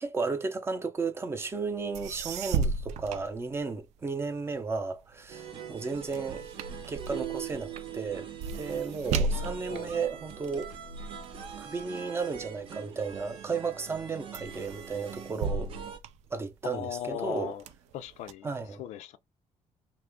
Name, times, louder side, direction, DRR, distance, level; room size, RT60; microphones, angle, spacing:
voice 1, 0.0-6.4 6.9-10.7 11.6-15.7 16.3-17.5 18.4-18.8, right 4 dB, 20° right, 0.5 m, -34 dB
sound 1, 1.7-1.8 1.9-4.1 4.5-13.2 13.7-14.1 14.3-16.8 17.3-18.3, right 4 dB, 85° right, 0.4 m, -36 dB
sound 2, 5.3-16.0, right 9 dB, 50° right, 0.7 m, -42 dB
voice 2, 9.7-10.0 16.6-17.6 17.9-18.5 18.8-19.2, left 11 dB, 85° left, 0.4 m, -37 dB
2.9 x 2.4 x 3.4 m
cardioid pair, 155°, 11 cm